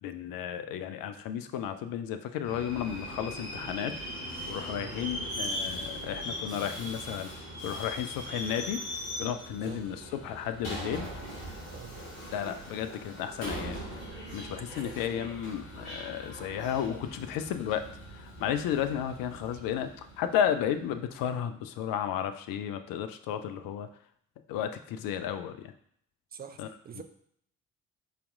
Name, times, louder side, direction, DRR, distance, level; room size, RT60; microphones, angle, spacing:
voice 1, 0.0-3.9 4.2-7.3 7.6-8.8 9.2-11.1 12.3-13.8 14.3-17.8 18.1-23.9 24.5-25.7 26.6-26.7 26.9-27.0, left 9 dB, 50° left, 9 dB, 0.5 m, -33 dB
Subway metro underground, 2.4-20.9, equal, 75° left, 1.8 m, -40 dB
voice 2, 14.7-15.1 19.4-19.6 26.3-27.0, right 7 dB, 25° right, 8 dB, 0.4 m, -46 dB
4.1 x 4.0 x 2.6 m, 0.67 s
figure-of-eight pair, 45°, 43 cm